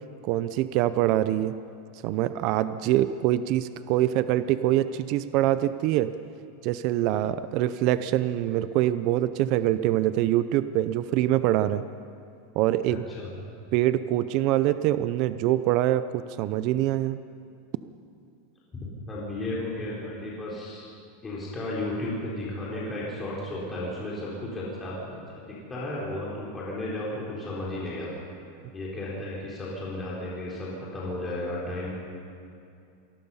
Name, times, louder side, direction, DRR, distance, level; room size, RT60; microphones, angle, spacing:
voice 1, 0.2-1.5 2.0-6.1 6.6-11.8 12.6-13.0 13.7-17.2, right 13 dB, 40° right, 13 dB, 0.6 m, -24 dB
voice 2, 12.9-13.3 19.1-20.9 21.2-25.0 25.7-28.1 28.7-31.9, left 1 dB, 15° left, -6 dB, 3.9 m, -33 dB
27.0 x 19.0 x 5.6 m, 2.5 s
supercardioid pair, 170°, 0 cm